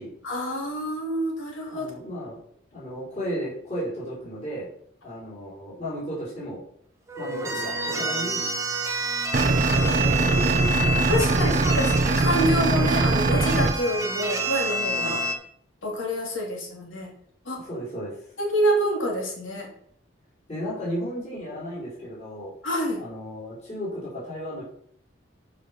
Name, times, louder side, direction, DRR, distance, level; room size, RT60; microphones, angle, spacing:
voice 1, 0.2-1.9 7.9-8.0 9.8-10.0 11.1-15.2 15.8-17.1 17.5-17.6 18.4-19.7 22.6-23.0, equal, 75° left, 0 dB, 2.6 m, -27 dB
voice 2, 1.7-2.4 2.7-4.7 5.0-6.6 7.2-8.4 9.8-12.0 15.0-15.4 17.5-18.2 20.5-22.5 23.0-24.6, equal, 35° left, -7 dB, 4.5 m, -34 dB
sound 1, 7.1-15.3, right 3 dB, 15° right, 1.0 m, -28 dB
sound 2, 9.3-13.7, right 2 dB, 40° right, 0.5 m, -22 dB
8.3 x 5.4 x 6.1 m, 0.64 s
head